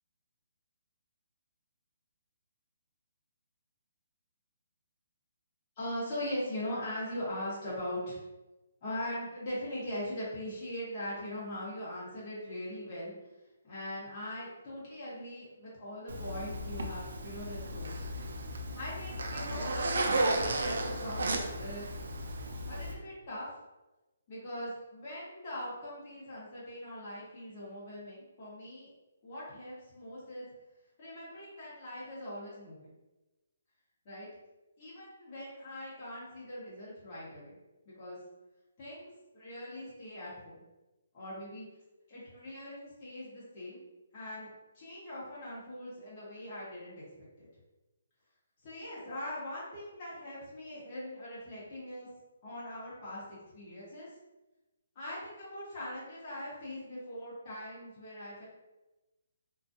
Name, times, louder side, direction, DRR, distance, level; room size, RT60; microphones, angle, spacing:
voice 1, 5.8-8.2 8.8-13.1 13.6-17.9 18.7-21.9 22.7-23.5 24.3-28.9 29.2-30.5 31.0-32.9 34.0-34.3 34.8-37.6 37.8-38.2 38.8-40.5 41.1-41.7 42.1-43.8 44.1-44.5 44.7-47.0 47.4-47.5 48.6-52.1 52.4-54.1 54.9-58.5, left 1 dB, 35° left, -8 dB, 1.1 m, -41 dB
Zipper (clothing), 16.1-22.9, right 2 dB, 70° right, 0.3 m, -34 dB
2.4 x 2.2 x 2.6 m, 1.1 s
hypercardioid pair, 165°, 0 cm